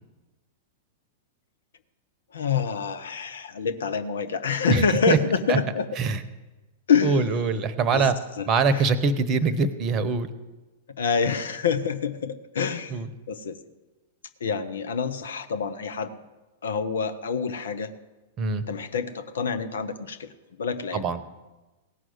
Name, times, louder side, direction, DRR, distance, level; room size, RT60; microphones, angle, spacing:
voice 1, 2.3-5.9 6.9-7.3 7.9-8.1 8.4-8.5 8.7-8.9 11.0-13.0 13.3-13.6 14.4-16.2 16.6-17.9 18.7-20.3 20.6-21.2, left 6 dB, 65° left, 10 dB, 0.8 m, -26 dB
voice 2, 4.7-5.2 5.5-5.6 6.0-6.2 7.0-8.1 8.5-10.3 12.9-13.1 18.4-18.6 20.9-21.2, right 4 dB, 30° right, 14 dB, 0.9 m, -23 dB
16.5 x 6.2 x 7.9 m, 1.1 s
figure-of-eight pair, 100°, 0 cm